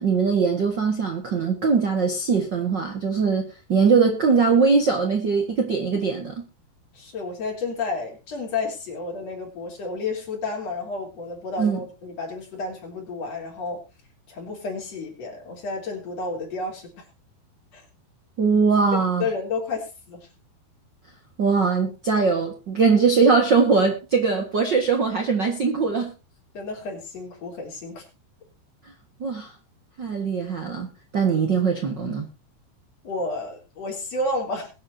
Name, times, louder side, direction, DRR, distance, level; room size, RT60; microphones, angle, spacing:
voice 1, 0.0-6.3 11.6-11.8 18.4-19.2 21.4-26.1 29.2-29.5 30.0-30.9 31.1-32.3, right 5 dB, 70° right, 1.0 m, -21 dB
voice 2, 6.9-13.8 14.3-17.0 17.7-17.8 18.9-20.3 26.5-28.0 33.0-34.7, left 3 dB, 40° left, 4.3 m, -31 dB
22.0 x 8.7 x 2.7 m
omnidirectional pair, 4.8 m